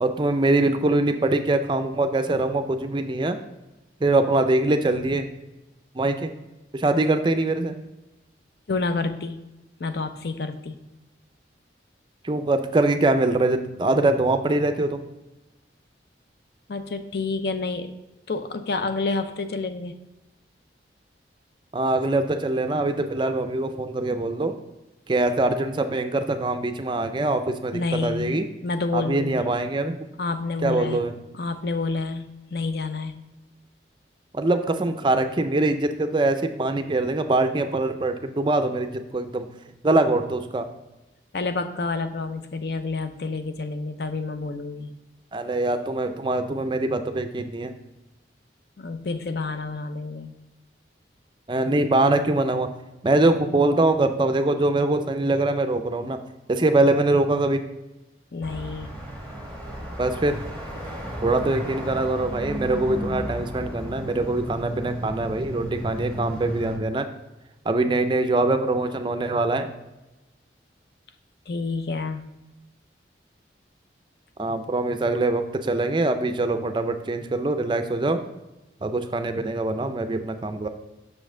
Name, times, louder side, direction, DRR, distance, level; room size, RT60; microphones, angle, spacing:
voice 1, 0.0-3.4 4.0-5.3 5.9-6.3 6.7-7.8 12.2-15.0 21.7-24.5 25.1-28.4 28.9-30.0 30.6-31.1 34.3-39.5 39.8-40.7 45.3-47.7 51.5-52.7 53.0-56.2 56.5-57.6 60.0-60.4 61.2-67.1 67.7-69.7 74.4-78.2 78.8-80.7, right 2 dB, 25° right, 7 dB, 0.4 m, -23 dB
voice 2, 8.7-9.4 9.8-10.8 16.7-17.9 18.3-20.0 27.7-29.5 30.2-31.0 31.3-33.2 41.3-44.9 48.8-50.3 58.3-58.9 71.5-72.2, left 3 dB, 55° left, 9 dB, 0.5 m, -29 dB
sound 1, 58.4-66.8, equal, 10° left, 1.1 m, -34 dB
6.2 x 5.3 x 3.7 m, 1.0 s
head